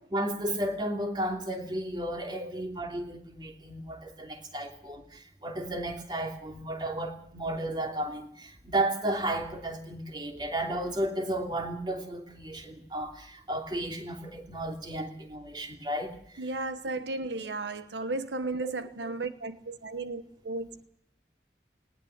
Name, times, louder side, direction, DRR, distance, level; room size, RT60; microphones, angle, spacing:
voice 1, 0.1-16.5 18.8-18.9, right 1 dB, 25° right, 2.9 m, -33 dB
voice 2, 16.4-20.8, right 2 dB, 90° right, 1.2 m, -34 dB
20.0 x 19.5 x 8.1 m
head